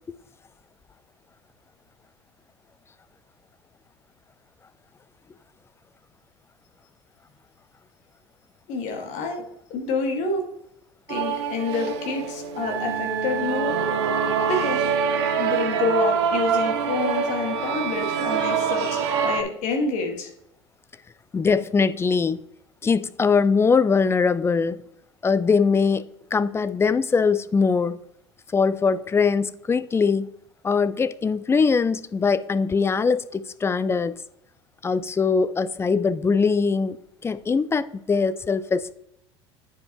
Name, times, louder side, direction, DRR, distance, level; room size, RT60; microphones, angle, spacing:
voice 1, 8.7-9.4 9.7-10.5 11.1-13.8 14.5-14.8 15.4-20.3, left 4 dB, 55° left, 1.8 m, -28 dB
sound 1, 11.1-19.4, right 7 dB, 70° right, 0.8 m, -25 dB
voice 2, 21.3-22.4 22.8-24.8 25.2-26.0 26.3-28.0 28.5-30.3 30.6-34.1 34.8-38.9, left 5 dB, 15° left, 0.4 m, -22 dB
9.3 x 5.1 x 3.0 m
hypercardioid pair, 70°, 15 cm